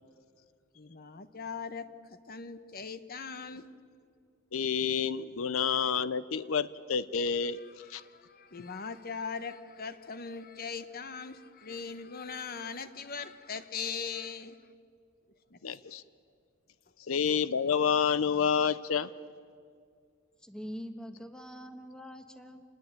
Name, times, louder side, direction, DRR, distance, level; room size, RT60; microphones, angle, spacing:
voice 1, 0.7-3.7 7.6-14.6 15.5-15.8, left 5 dB, 45° left, 11 dB, 1.1 m, -40 dB
voice 2, 4.5-7.6 7.9-8.0 15.6-16.0 17.1-19.1, left 6 dB, 85° left, 15 dB, 0.7 m, -29 dB
voice 3, 20.4-22.6, equal, 5° left, 7 dB, 1.4 m, -44 dB
27.5 x 20.0 x 9.0 m, 2.2 s
head